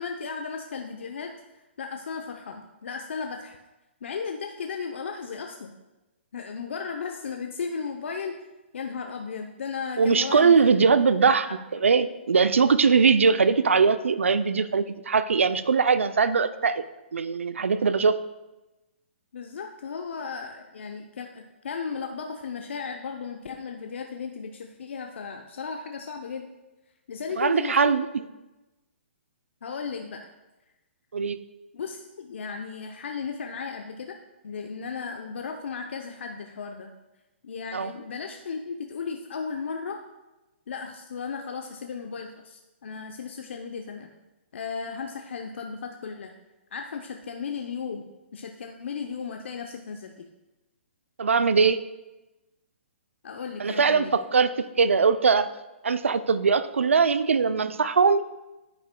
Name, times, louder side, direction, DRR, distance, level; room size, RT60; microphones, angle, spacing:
voice 1, 0.0-1.3 1.8-3.6 4.0-5.7 6.3-8.4 8.7-10.9 11.5-11.6 19.3-26.5 27.1-27.9 29.6-30.3 31.7-34.2 34.4-36.9 37.4-40.0 40.7-44.1 44.5-46.3 46.7-50.3 53.2-54.2, left 5 dB, 70° left, 4 dB, 0.6 m, -35 dB
voice 2, 10.0-16.8 17.1-18.2 27.4-28.1 31.1-31.4 37.7-37.9 51.2-51.8 53.6-55.5 55.8-58.2, right 5 dB, 85° right, 13 dB, 0.5 m, -21 dB
9.9 x 8.8 x 2.2 m, 1.0 s
hypercardioid pair, 135°, 7 cm